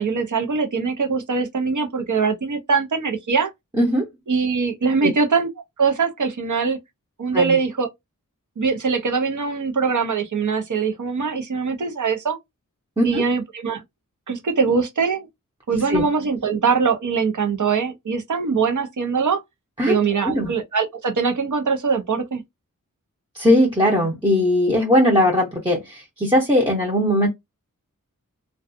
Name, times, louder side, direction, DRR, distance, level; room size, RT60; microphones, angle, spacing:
voice 1, 0.0-3.5 4.3-5.5 5.8-6.8 7.2-7.9 8.6-12.4 13.0-13.8 14.3-15.3 15.7-19.4 19.9-22.4, right 5 dB, 65° right, 0.7 m, -22 dB
voice 2, 3.7-4.0 5.0-5.1 7.3-7.6 13.0-13.2 15.7-16.1 19.8-20.0 20.2-20.5 23.3-27.3, left 1 dB, 15° right, 0.7 m, -19 dB
2.4 x 2.3 x 2.5 m
wide cardioid pair, 55°, 33 cm